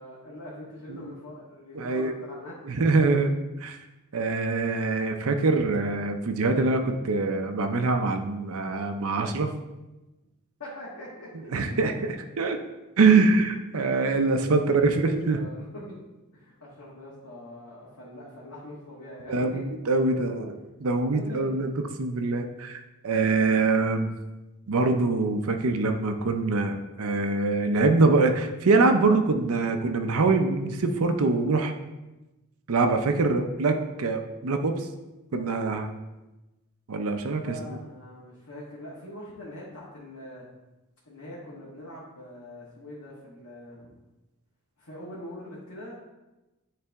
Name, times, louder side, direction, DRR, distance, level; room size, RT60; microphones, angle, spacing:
voice 1, 0.0-2.5 10.6-11.5 14.6-16.0 16.3-19.6 20.2-20.3 21.1-21.5 37.4-40.4 41.0-43.9 44.8-46.0, left 1 dB, 80° left, -7 dB, 1.6 m, -43 dB
voice 2, 1.7-2.1 2.7-3.3 3.6-3.8 4.1-9.5 11.5-12.6 13.0-15.4 19.3-21.7 22.0-24.1 24.7-31.7 32.7-34.9 35.3-35.9 36.9-37.6, right 3 dB, 70° right, 5 dB, 0.5 m, -24 dB
9.5 x 3.4 x 3.5 m, 1.0 s
head